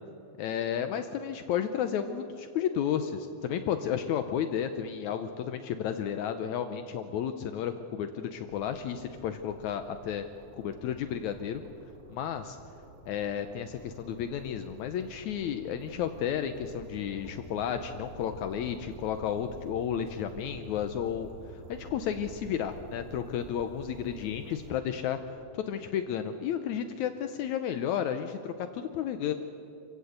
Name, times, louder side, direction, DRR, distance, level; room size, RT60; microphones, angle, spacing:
voice 1, 0.4-10.3 10.6-11.6 12.1-12.6 13.1-25.2 25.5-29.3, left 9 dB, 75° left, 8 dB, 2.1 m, -32 dB
sound 1, 8.5-24.7, right 1 dB, 85° right, 3.9 m, -49 dB
27.0 x 16.5 x 8.0 m, 2.9 s
omnidirectional pair, 3.5 m